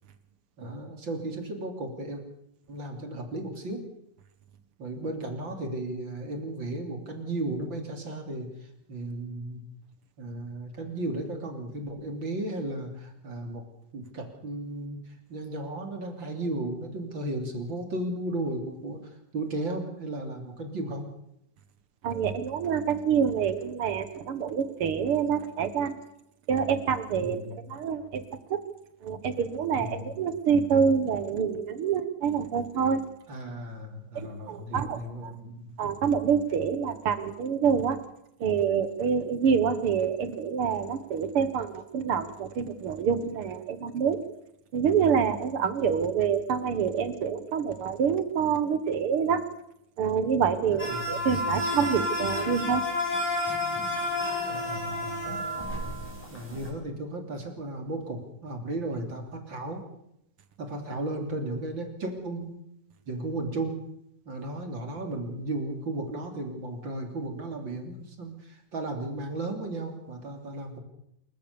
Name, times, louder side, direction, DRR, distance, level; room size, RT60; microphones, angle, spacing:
voice 1, 0.6-2.2 2.7-3.8 4.8-8.5 8.9-9.6 10.2-13.6 13.9-19.0 19.3-21.1 27.2-27.6 29.7-30.2 33.3-35.7 50.7-51.3 54.5-55.5 56.3-59.8 60.6-62.6 63.1-63.8 64.3-70.8, right 2 dB, 35° right, 4 dB, 3.5 m, -35 dB
voice 2, 22.0-26.0 26.5-28.6 29.0-33.0 34.2-35.3 35.8-38.0 38.4-44.2 44.7-49.4 50.0-52.8, right 7 dB, 50° right, 12 dB, 1.8 m, -27 dB
sound 1, 50.8-56.7, left 1 dB, 5° left, 7.6 m, -30 dB
27.5 x 15.0 x 7.0 m, 0.75 s
omnidirectional pair, 3.9 m